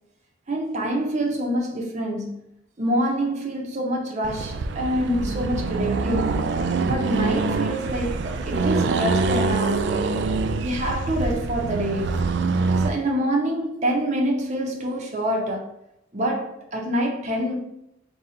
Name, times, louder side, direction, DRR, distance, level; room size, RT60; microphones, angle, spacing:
voice 1, 0.5-2.4 2.8-6.4 6.8-10.1 10.6-12.2 12.8-15.7 16.1-17.5, equal, 35° right, 0.7 m, -26 dB
Accelerating revving vroom, 4.2-13.0, right 3 dB, 60° right, 0.3 m, -25 dB
3.8 x 2.3 x 4.1 m
head